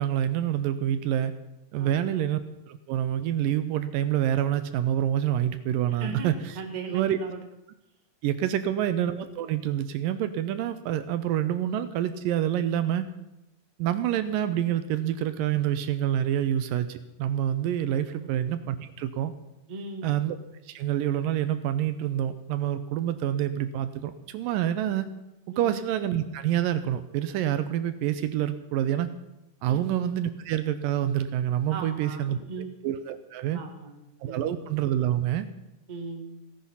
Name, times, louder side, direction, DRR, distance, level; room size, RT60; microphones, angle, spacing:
voice 1, 0.0-1.3 1.7-2.4 2.7-6.6 6.9-7.2 8.2-13.1 13.8-19.3 20.0-20.4 20.7-25.1 25.5-29.1 29.6-32.4 32.8-33.6 34.2-35.5, right 11 dB, 80° right, 11 dB, 2.2 m, -27 dB
voice 2, 1.8-2.1 5.9-7.4 18.2-18.3 19.7-20.1 25.5-25.7 29.7-29.9 31.7-32.7 33.5-34.6 35.9-36.4, right 4 dB, 25° right, 2 dB, 1.0 m, -39 dB
16.5 x 10.5 x 5.7 m, 0.93 s
omnidirectional pair, 4.2 m